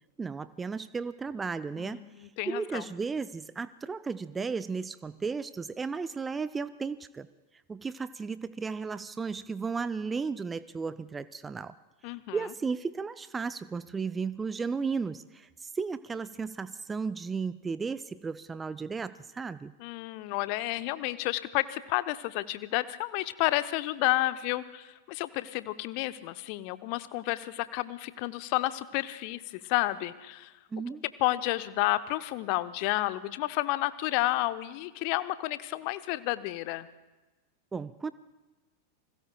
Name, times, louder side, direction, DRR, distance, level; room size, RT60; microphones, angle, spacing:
voice 1, 0.2-2.0 2.5-7.3 7.7-11.7 12.3-19.7 30.7-31.0 37.7-38.1, right 5 dB, 15° right, 15 dB, 0.4 m, -34 dB
voice 2, 1.8-2.8 12.0-12.4 19.8-30.5 31.0-36.9, left 18 dB, 45° left, 14 dB, 0.7 m, -31 dB
29.5 x 20.5 x 2.3 m, 1.2 s
figure-of-eight pair, 90°, 0 cm